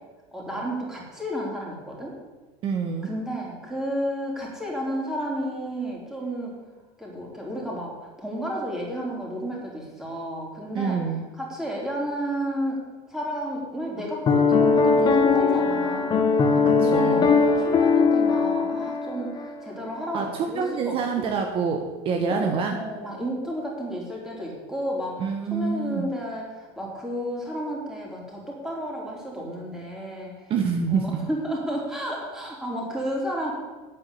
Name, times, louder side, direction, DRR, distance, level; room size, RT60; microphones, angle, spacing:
voice 1, 0.3-2.1 3.0-6.5 7.0-11.0 11.4-12.8 13.1-21.3 22.3-30.5 30.9-33.5, equal, 5° right, -3 dB, 4.1 m, -32 dB
voice 2, 2.6-3.1 10.7-11.2 16.6-17.3 20.1-22.8 25.2-26.1 30.5-31.0, right 5 dB, 45° right, 4 dB, 1.3 m, -26 dB
Piano, 14.3-19.6, left 4 dB, 35° left, 1.4 m, -20 dB
9.0 x 8.6 x 8.5 m, 1.3 s
supercardioid pair, 130°, 13 cm